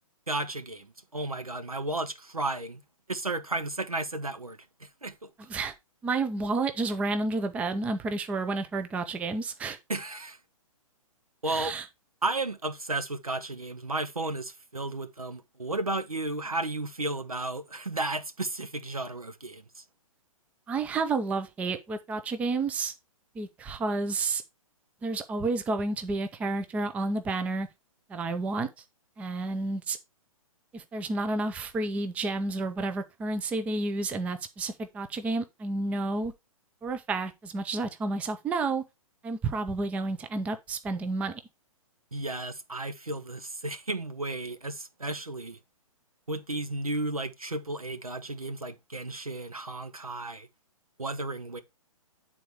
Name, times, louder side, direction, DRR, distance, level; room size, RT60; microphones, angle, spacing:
voice 1, 0.3-2.8 3.1-5.3 9.9-10.4 11.4-11.7 12.2-19.8 42.1-45.6 46.3-50.5 51.0-51.6, right 2 dB, 85° right, 1.0 m, -33 dB
voice 2, 6.0-9.8 11.5-11.9 20.7-22.9 23.3-24.4 25.0-27.7 28.1-28.7 29.2-30.0 30.7-36.3 36.8-38.8 39.2-41.4, right 3 dB, 5° right, 0.5 m, -30 dB
9.2 x 4.0 x 4.6 m
figure-of-eight pair, 120°, 18 cm